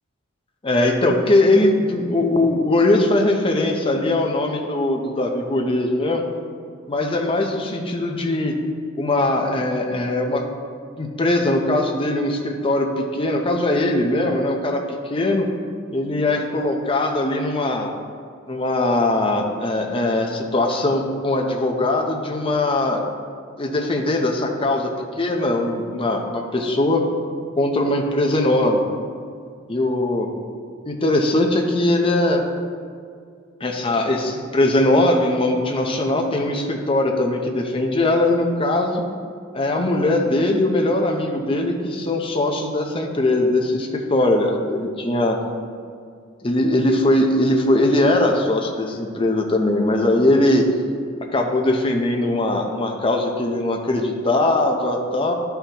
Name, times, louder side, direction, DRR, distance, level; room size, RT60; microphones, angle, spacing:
voice 1, 0.6-6.2 6.9-8.5 9.0-10.4 11.0-14.8 15.1-15.5 15.9-17.9 18.5-23.0 23.6-24.9 25.2-27.0 27.6-28.8 29.7-30.3 30.8-32.4 33.6-39.0 39.5-45.4 46.4-50.7 51.3-55.3, left 1 dB, 25° left, 2 dB, 0.7 m, -20 dB
11.5 x 5.7 x 2.9 m, 2.2 s
head